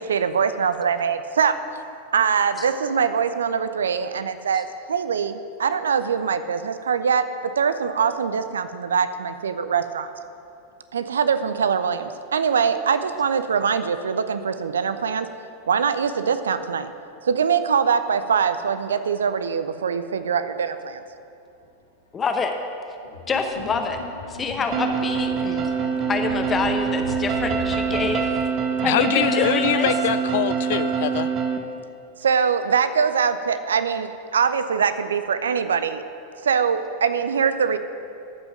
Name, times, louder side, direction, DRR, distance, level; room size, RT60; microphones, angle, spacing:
voice 1, 0.0-1.6 2.1-7.3 7.6-10.1 10.9-15.3 15.7-16.9 17.2-21.0 32.2-36.0 36.4-37.8, right 6 dB, 65° right, 12 dB, 0.5 m, -23 dB
sound 1, 21.6-21.7 23.0-28.1, left 1 dB, 85° left, 1.7 m, -37 dB
voice 2, 22.1-22.5 23.3-24.0 24.3-25.7 26.1-28.4 28.8-29.9, left 4 dB, 20° left, 5 dB, 0.8 m, -26 dB
sound 2, 24.7-31.6, right 6 dB, 35° right, 0.9 m, -24 dB
voice 3, 28.8-31.3, left 13 dB, 50° left, 15 dB, 0.3 m, -23 dB
13.0 x 5.8 x 5.9 m, 2.6 s
figure-of-eight pair, 90°, 0 cm